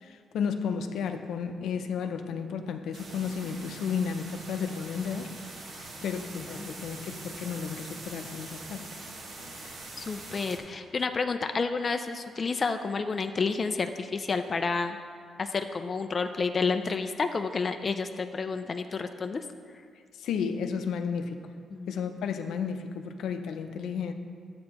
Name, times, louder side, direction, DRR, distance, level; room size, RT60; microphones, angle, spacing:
voice 1, 0.0-5.3 6.0-8.9 20.2-21.4 21.9-24.1, left 6 dB, 80° left, 6 dB, 0.6 m, -33 dB
sound 1, 2.9-10.6, right 2 dB, 60° right, 1.6 m, -43 dB
voice 2, 10.0-15.0 15.4-19.4 21.7-21.9, left 4 dB, 30° left, 7 dB, 0.4 m, -30 dB
12.0 x 8.5 x 3.0 m, 2.1 s
cardioid pair, 130°, 0 cm